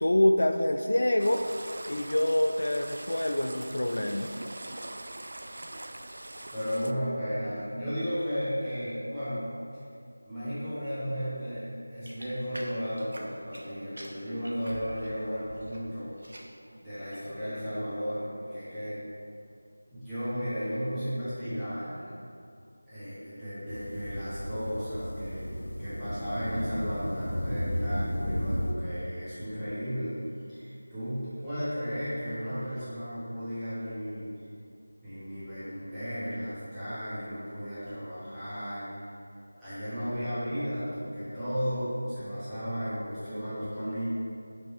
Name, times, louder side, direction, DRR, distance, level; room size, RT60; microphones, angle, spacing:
voice 1, 0.0-1.4 1.9-4.4, left 1 dB, 55° left, 5 dB, 0.3 m, -26 dB
sound 1, 1.2-6.9, right 1 dB, 45° right, 0.3 m, -42 dB
voice 2, 6.5-9.5 10.2-16.1 16.7-19.0 19.9-22.0 22.9-25.5 25.8-30.1 30.5-34.3 35.0-38.9 39.6-44.1, equal, ahead, -21 dB, 1.3 m, -34 dB
sound 2, 12.0-13.7 13.9-15.8 16.1-16.6 17.0-17.3, equal, 65° right, 1.1 m, -46 dB
sound 3, 23.7-28.7, equal, 70° left, 1.5 m, -33 dB
6.1 x 5.1 x 4.8 m, 2.4 s
figure-of-eight pair, 180°, 0 cm